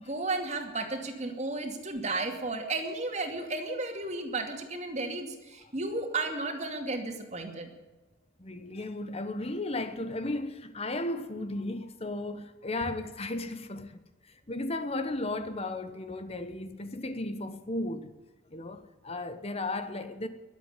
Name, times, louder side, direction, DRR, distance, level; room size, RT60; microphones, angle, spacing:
voice 1, 0.1-7.7, right 2 dB, 35° right, 2.4 m, -33 dB
voice 2, 8.4-18.1 18.5-20.3, left 2 dB, 30° left, 1.0 m, -35 dB
22.0 x 8.2 x 8.1 m
head